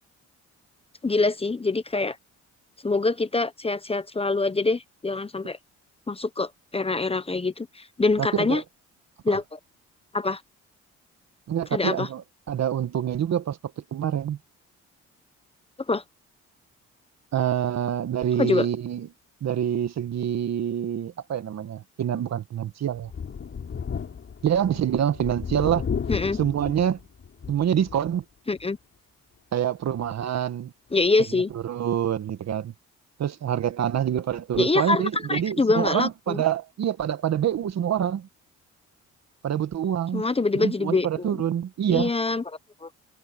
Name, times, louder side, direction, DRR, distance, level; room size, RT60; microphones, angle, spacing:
voice 1, 1.0-2.2 2.8-5.6 6.1-8.6 9.2-9.6 10.1-10.4 11.7-12.1 15.9-16.0 18.4-18.7 26.1-26.4 28.5-28.8 30.9-31.5 34.6-36.4 40.1-41.4 41.9-42.4 42.8-42.9, left 3 dB, 20° left, 1.1 m, -25 dB
voice 2, 11.5-12.2 12.5-14.4 17.3-19.1 19.4-23.1 24.4-25.9 26.4-27.0 27.5-28.2 29.5-30.7 31.5-32.7 33.2-38.3 39.4-40.3 40.5-42.1, right 9 dB, 60° right, 1.8 m, -26 dB
Thunder, 23.0-28.1 28.6-28.7 30.0-30.1, left 6 dB, 45° left, 4.4 m, -34 dB
cardioid pair, 90°, 30 cm